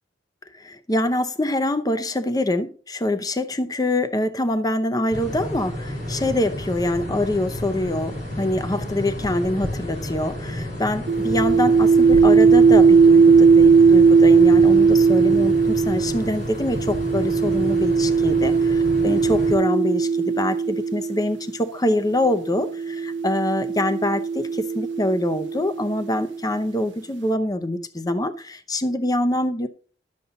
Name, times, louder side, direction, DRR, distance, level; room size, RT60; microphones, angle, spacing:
voice 1, 0.5-18.5 19.0-29.7, left 1 dB, 20° left, 0.7 m, -24 dB
sound 1, 5.1-19.6, left 1 dB, 50° left, 3.9 m, -31 dB
sound 2, 11.1-21.4 22.3-26.1, right 5 dB, 75° right, 0.4 m, -18 dB
11.5 x 6.9 x 3.9 m
head